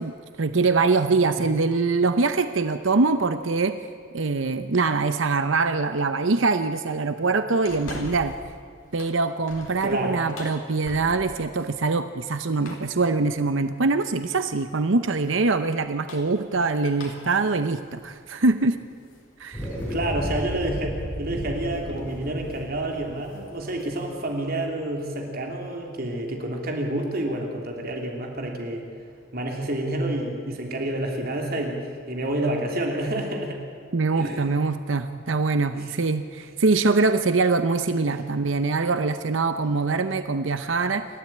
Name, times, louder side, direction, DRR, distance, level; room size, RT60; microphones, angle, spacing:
voice 1, 0.0-3.8 4.1-8.4 8.9-18.8 19.4-19.7 33.9-41.1, right 3 dB, 70° right, 10 dB, 0.8 m, -23 dB
sound 1, 7.6-8.5 8.8-11.5 12.6-13.0 14.1-14.5 15.8-19.2 19.7-19.8 21.3-21.5 21.9-22.1 22.4-22.7 23.0-24.1, left 2 dB, 80° left, 3.8 m, -43 dB
voice 2, 9.8-10.3 19.9-28.8 29.3-31.8 32.1-33.6 34.1-34.5 35.7-35.9 38.1-38.2, right 1 dB, 50° right, 1 dB, 3.1 m, -29 dB
sound 2, 19.5-24.2, equal, 10° left, 6.9 m, -33 dB
28.0 x 13.0 x 8.7 m, 2.3 s
head